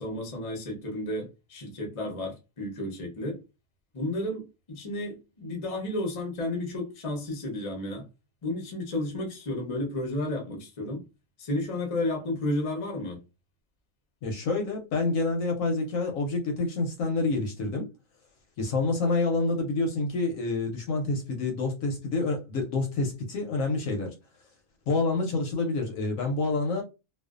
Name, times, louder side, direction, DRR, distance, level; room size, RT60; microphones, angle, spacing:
voice 1, 0.0-3.4 3.9-8.0 8.4-11.0 11.4-13.2, left 1 dB, 40° left, 0.5 m, -32 dB
voice 2, 14.2-17.9 18.6-24.1 24.9-26.8, left 3 dB, 65° left, 0.9 m, -28 dB
2.4 x 2.3 x 2.4 m
omnidirectional pair, 1.6 m